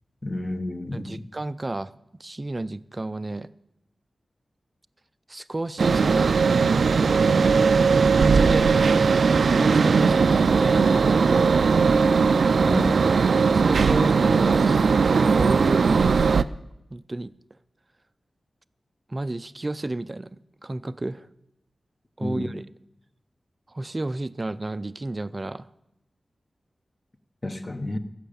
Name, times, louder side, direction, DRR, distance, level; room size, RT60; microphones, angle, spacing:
voice 1, 0.2-1.2 12.7-12.9 22.2-22.5 27.4-28.0, left 1 dB, 25° left, 1.0 m, -30 dB
voice 2, 0.9-1.9 2.2-3.5 5.3-6.5 8.1-8.7 9.5-11.9 12.6-13.0 13.5-16.4 16.9-17.3 19.1-21.3 22.2-22.7 23.7-25.7, right 2 dB, 25° right, 0.5 m, -32 dB
sound 1, 5.8-16.4, right 5 dB, 80° right, 0.4 m, -19 dB
15.0 x 6.7 x 8.6 m
wide cardioid pair, 110°, 0 cm